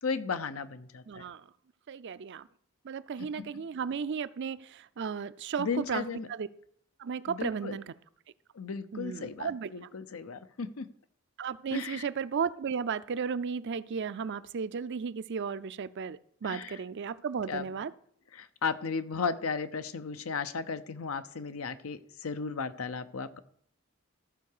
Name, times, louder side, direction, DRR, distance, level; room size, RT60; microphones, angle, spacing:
voice 1, 0.0-1.2 3.2-3.5 5.6-6.3 7.3-7.8 8.5-10.9 11.7-12.1 16.4-16.8 17.5-17.7 18.3-23.4, left 5 dB, 85° left, 12 dB, 0.7 m, -35 dB
voice 2, 1.1-1.4 1.9-2.5 2.8-6.5 7.0-7.9 8.9-9.9 11.4-17.9, right 6 dB, 55° right, 15 dB, 0.5 m, -34 dB
14.0 x 4.7 x 6.6 m, 0.65 s
head